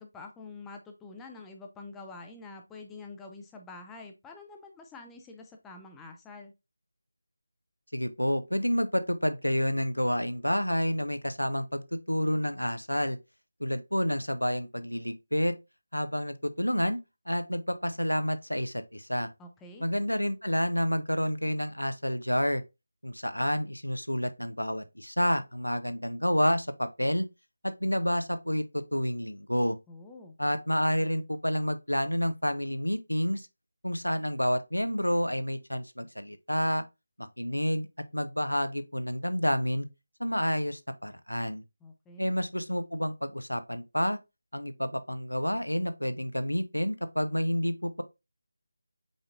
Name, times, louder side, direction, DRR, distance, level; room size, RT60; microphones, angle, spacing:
voice 1, 0.0-6.5 19.4-19.9 29.9-30.3 41.8-42.3, left 3 dB, 5° left, 0.4 m, -47 dB
voice 2, 7.9-13.2 13.6-15.6 15.9-17.0 17.3-19.3 19.8-22.6 23.0-27.3 27.6-29.8 30.4-33.5 33.8-36.9 37.2-37.9 38.1-39.9 40.2-41.6 42.2-44.2 44.5-48.0, equal, 85° left, 0.6 m, -29 dB
5.1 x 3.9 x 2.4 m
figure-of-eight pair, 160°, 0 cm